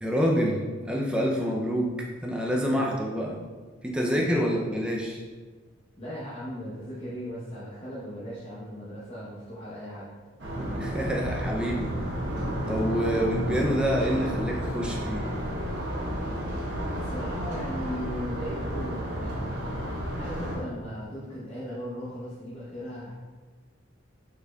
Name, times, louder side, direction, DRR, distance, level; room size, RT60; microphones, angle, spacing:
voice 1, 0.0-3.4 3.8-5.2 10.8-11.9 12.7-15.2, equal, 5° right, -2 dB, 0.4 m, -27 dB
voice 2, 6.0-10.1 17.0-19.8 20.1-23.1, equal, 30° left, -8 dB, 0.8 m, -37 dB
sound 1, 10.4-20.6, equal, 55° right, 0.9 m, -31 dB
5.3 x 4.3 x 2.3 m, 1.4 s
head